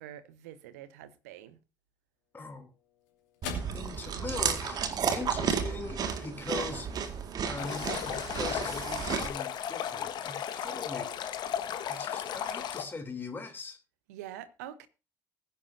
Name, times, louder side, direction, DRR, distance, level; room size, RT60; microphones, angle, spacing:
voice 1, 0.0-1.6 14.1-14.9, right 12 dB, 70° right, 1.1 m, -45 dB
sound 1, 2.1-10.7, left 7 dB, 70° left, 3.1 m, -51 dB
voice 2, 2.3-2.7 3.7-6.9 7.4-11.1 11.8-13.8, left 3 dB, 20° left, 3.2 m, -41 dB
Chewing mastication, 3.4-9.3, right 6 dB, 45° right, 2.0 m, -32 dB
Stream, 7.6-12.8, left 9 dB, 55° left, 1.6 m, -35 dB
20.5 x 10.5 x 2.8 m
figure-of-eight pair, 45°, 9 cm